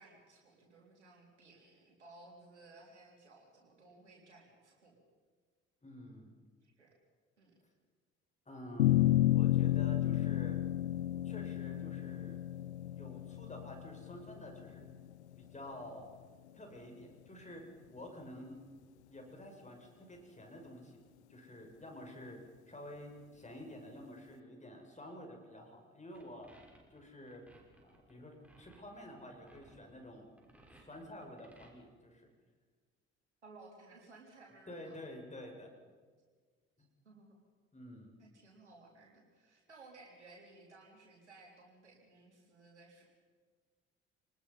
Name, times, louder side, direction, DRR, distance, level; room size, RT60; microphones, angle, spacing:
voice 1, 0.0-5.0 6.6-6.9 7.4-7.5 33.4-35.0 37.0-37.4 38.2-43.0, right 3 dB, 85° right, -1 dB, 4.0 m, -58 dB
voice 2, 5.8-6.3 8.5-9.0 9.3-10.6 11.2-12.4 12.9-14.8 15.4-16.1 16.5-17.6 17.9-18.6 19.1-21.0 21.3-22.4 22.7-26.5 26.9-27.5 27.8-30.3 30.8-32.3 34.7-35.7 36.8-36.9 37.7-38.1, left 1 dB, 20° left, 2 dB, 6.4 m, -50 dB
sound 1, 8.8-15.3, left 14 dB, 80° left, 0.7 m, -31 dB
sound 2, 26.1-31.7, right 1 dB, 5° right, 6.3 m, -62 dB
28.5 x 20.0 x 5.5 m, 1.5 s
figure-of-eight pair, 50°, 33 cm